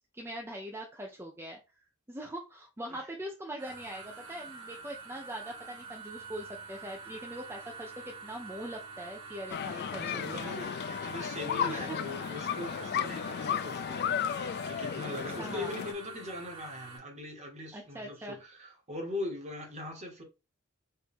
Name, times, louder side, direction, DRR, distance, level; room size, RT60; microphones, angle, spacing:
voice 1, 0.1-1.6 2.1-10.6 11.5-12.0 15.4-15.8 17.7-18.4, right 1 dB, 10° right, 0.6 m, -42 dB
sound 1, 3.6-17.0, right 5 dB, 70° right, 1.4 m, -47 dB
sound 2, 9.5-15.9, left 8 dB, 50° left, 0.3 m, -34 dB
voice 2, 9.9-14.0 14.7-20.2, left 1 dB, 35° right, 1.4 m, -41 dB
4.6 x 2.7 x 3.5 m
head